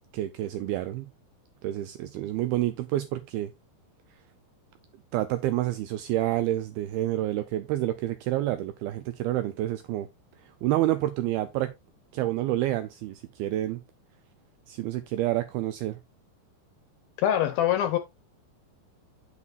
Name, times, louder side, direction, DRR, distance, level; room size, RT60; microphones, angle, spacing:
voice 1, 0.1-1.1 1.6-3.5 5.1-10.1 10.4-11.7 12.1-13.8 14.7-16.0, right 14 dB, 90° right, 2.2 m, -28 dB
voice 2, 17.2-18.0, left 11 dB, 80° left, 2.2 m, -24 dB
9.1 x 8.3 x 2.5 m
omnidirectional pair, 5.0 m